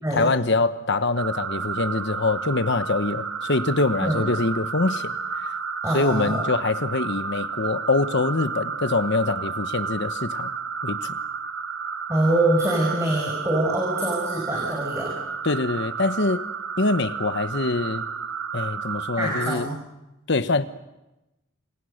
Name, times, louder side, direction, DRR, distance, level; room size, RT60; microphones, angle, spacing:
voice 1, 0.1-5.2 5.9-10.5 10.8-11.2 15.4-16.5 16.8-18.1 18.5-19.7 20.3-20.6, left 3 dB, 55° left, 12 dB, 1.1 m, -24 dB
sound 1, 1.2-19.6, right 5 dB, 75° right, 1.4 m, -31 dB
voice 2, 5.8-6.5 12.1-15.2 19.2-19.8, right 1 dB, 15° right, -1 dB, 5.5 m, -24 dB
28.5 x 27.5 x 6.6 m, 0.98 s
head